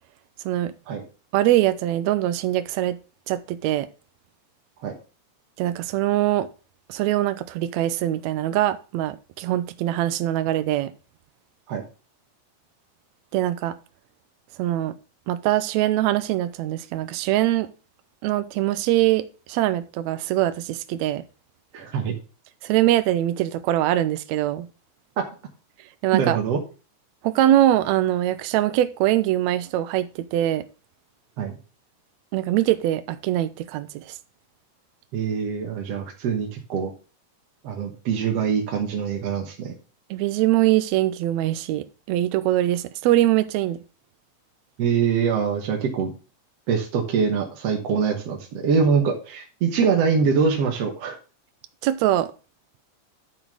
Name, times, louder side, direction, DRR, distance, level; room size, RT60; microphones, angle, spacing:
voice 1, 1.3-3.0 3.3-3.9 5.6-6.5 6.9-10.9 13.3-13.8 14.6-14.9 15.3-17.7 18.2-21.2 22.6-24.7 26.0-26.4 27.2-30.6 32.3-34.2 40.1-43.8 51.8-52.3, right 14 dB, 80° right, 1.8 m, -22 dB
voice 2, 21.7-22.1 25.2-25.3 26.1-26.6 31.4-31.6 35.1-36.9 37.6-39.7 44.8-46.1 46.7-51.2, right 6 dB, 60° right, 2.2 m, -24 dB
11.0 x 3.9 x 6.1 m
omnidirectional pair, 3.3 m